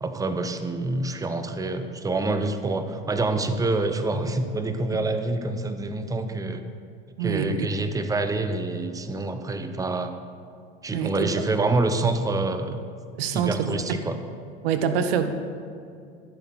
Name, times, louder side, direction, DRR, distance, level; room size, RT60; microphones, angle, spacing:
voice 1, 0.0-6.6 7.2-10.1 10.8-12.8 13.3-14.2, right 2 dB, 10° right, 8 dB, 0.7 m, -26 dB
voice 2, 7.2-7.6 10.9-11.5 13.2-14.0 14.6-15.3, right 7 dB, 75° right, 9 dB, 0.8 m, -26 dB
12.0 x 8.2 x 4.1 m, 2.4 s
hypercardioid pair, 85°, 30 cm